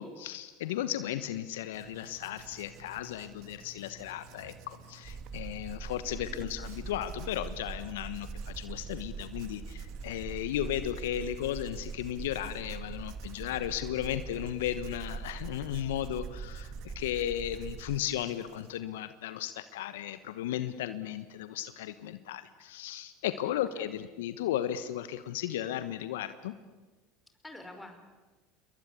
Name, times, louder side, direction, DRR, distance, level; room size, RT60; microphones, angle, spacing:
voice 1, 0.0-26.5, left 12 dB, 70° left, 12 dB, 1.2 m, -35 dB
Writing, 1.7-18.8, right 4 dB, 55° right, 1.8 m, -53 dB
sound 1, 5.0-18.0, right 5 dB, 30° right, 3.2 m, -42 dB
voice 2, 6.1-6.4 23.4-23.9 27.3-28.0, left 2 dB, 10° left, 6 dB, 5.3 m, -49 dB
29.0 x 22.0 x 8.5 m, 1.2 s
hypercardioid pair, 80°, 0 cm